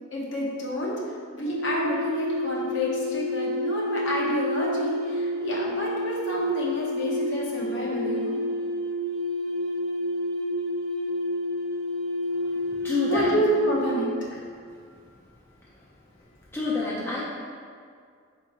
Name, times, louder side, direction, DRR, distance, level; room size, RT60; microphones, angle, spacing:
voice 1, 0.1-8.4 13.0-14.4, equal, 60° left, -5 dB, 0.9 m, -29 dB
sound 1, 1.4-14.2, left 1 dB, 70° right, 0.8 m, -29 dB
voice 2, 12.8-13.3 16.5-17.2, left 3 dB, 10° left, -7 dB, 0.5 m, -27 dB
4.4 x 3.0 x 3.6 m, 2.1 s
head